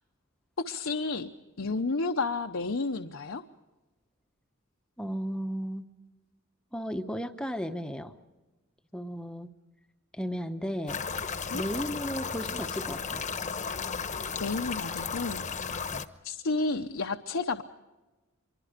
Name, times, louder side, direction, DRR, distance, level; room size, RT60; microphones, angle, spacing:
voice 1, 0.6-1.3 1.6-3.4 11.5-11.7 14.4-15.8 16.2-17.6, left 3 dB, 70° left, 5 dB, 0.8 m, -31 dB
voice 2, 5.0-5.9 6.7-8.1 8.9-9.5 10.1-11.0 11.5-13.2 15.9-16.0, equal, 5° left, 7 dB, 0.9 m, -34 dB
sound 1, 10.9-16.1, left 5 dB, 35° left, 1.0 m, -34 dB
25.5 x 23.5 x 5.1 m, 1.1 s
head